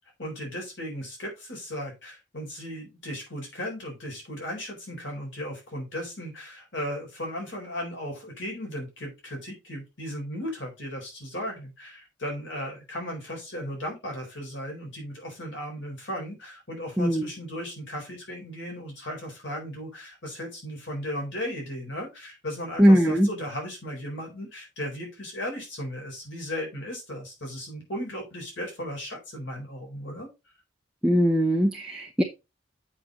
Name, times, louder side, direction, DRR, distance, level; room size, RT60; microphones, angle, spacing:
voice 1, 0.2-30.3, equal, 60° left, 4.2 m, -36 dB
voice 2, 22.8-23.3 31.0-32.2, equal, 5° right, 0.8 m, -20 dB
7.7 x 6.1 x 3.9 m
head